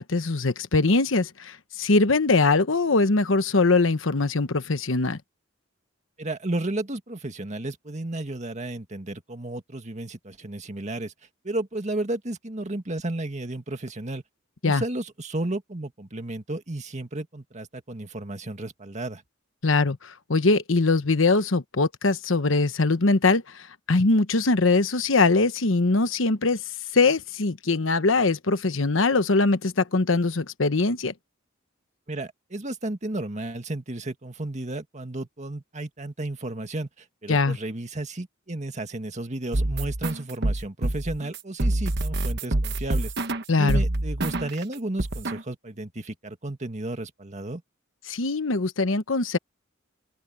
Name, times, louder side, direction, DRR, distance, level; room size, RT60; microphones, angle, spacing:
voice 1, 0.0-5.2 14.6-14.8 19.6-20.0 20.3-23.4 23.9-26.6 26.9-31.1 37.3-37.6 43.5-43.8 48.1-49.4, left 3 dB, 80° left, 1.1 m, -22 dB
voice 2, 6.2-11.1 11.4-14.2 14.6-19.2 32.1-43.1 43.6-47.6, right 2 dB, 35° right, 2.0 m, -33 dB
sound 1, 39.5-44.6 45.0-45.4, right 1 dB, 55° right, 1.2 m, -26 dB
head